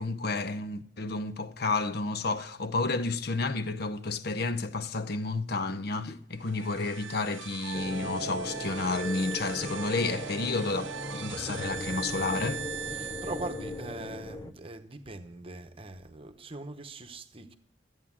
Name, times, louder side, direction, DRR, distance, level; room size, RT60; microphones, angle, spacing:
voice 1, 0.0-12.6, left 3 dB, 55° left, 0.7 m, -31 dB
sound 1, 6.4-14.0, right 8 dB, 80° right, 0.6 m, -40 dB
sound 2, 7.7-14.5, left 2 dB, 20° left, 0.5 m, -39 dB
voice 2, 12.9-17.5, right 2 dB, 30° right, 1.0 m, -41 dB
13.0 x 8.9 x 7.4 m
head